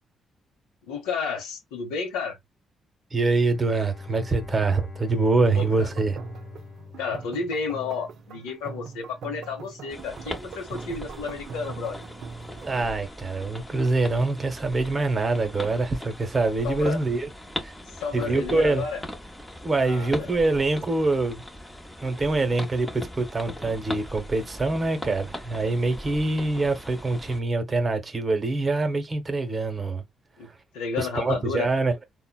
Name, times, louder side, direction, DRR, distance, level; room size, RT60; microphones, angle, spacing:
voice 1, 0.9-2.4 5.5-5.9 7.0-12.0 16.6-17.0 17.9-19.0 19.8-20.4 30.4-30.5 30.7-31.7, left 5 dB, 85° left, 0.7 m, -32 dB
voice 2, 3.1-6.2 12.6-17.3 17.6-17.7 18.1-18.8 19.6-21.4 22.0-30.0 31.0-31.9, right 3 dB, 35° right, 0.9 m, -25 dB
Bowed string instrument, 3.5-8.1, left 6 dB, 50° left, 0.9 m, -43 dB
sound 1, 5.4-13.0, right 5 dB, 70° right, 0.4 m, -41 dB
sound 2, 9.9-27.4, left 1 dB, 15° left, 0.8 m, -40 dB
3.7 x 2.1 x 2.3 m
hypercardioid pair, 50°, 0 cm